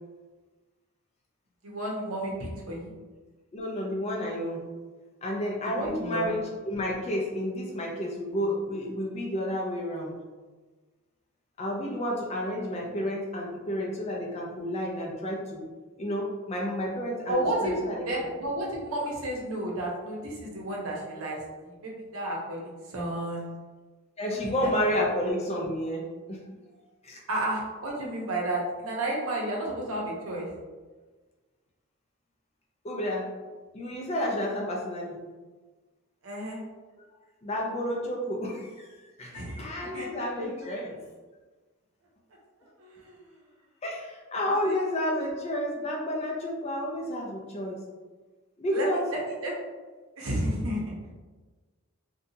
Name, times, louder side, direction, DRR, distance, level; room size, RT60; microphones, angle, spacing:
voice 1, 1.6-2.9 5.7-6.3 17.3-23.5 24.4-24.7 27.3-30.5 36.2-36.6 39.3-39.6 39.9-40.1 42.8-43.2 44.6-44.7 48.7-49.5 50.2-50.8, right 1 dB, 70° right, -2 dB, 0.7 m, -32 dB
voice 2, 3.5-4.6 5.2-10.2 11.6-15.6 16.0-18.0 24.2-26.4 27.0-27.2 32.8-33.3 33.7-35.2 37.0-37.1 37.4-41.0 43.8-47.8 48.6-49.0, equal, 30° left, -1 dB, 0.4 m, -31 dB
2.7 x 2.2 x 2.6 m, 1.3 s
head